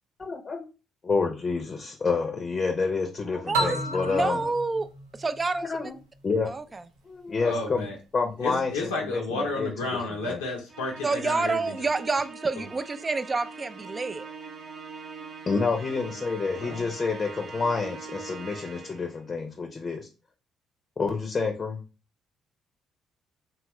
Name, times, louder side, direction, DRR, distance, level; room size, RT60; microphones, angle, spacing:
voice 1, 0.2-0.6 1.0-4.5 5.6-6.0 6.2-6.5 7.1-7.8 8.1-9.7 10.2-10.4 15.5-20.1 21.0-21.8, left 4 dB, 40° left, 3 dB, 0.6 m, -28 dB
voice 2, 3.5-4.9 5.2-5.9 6.5-6.8 11.0-14.3, right 3 dB, 30° right, 12 dB, 0.3 m, -28 dB
sound 1, 3.5-6.2, right 1 dB, 85° right, 0.5 m, -34 dB
voice 3, 7.4-8.0 8.4-11.7 12.6-12.7 16.6-16.9, left 2 dB, 90° left, -2 dB, 0.6 m, -32 dB
Musical instrument, 10.7-19.2, right 4 dB, 55° right, 0.7 m, -42 dB
2.9 x 2.3 x 2.9 m, 0.31 s
hypercardioid pair, 50°, 0 cm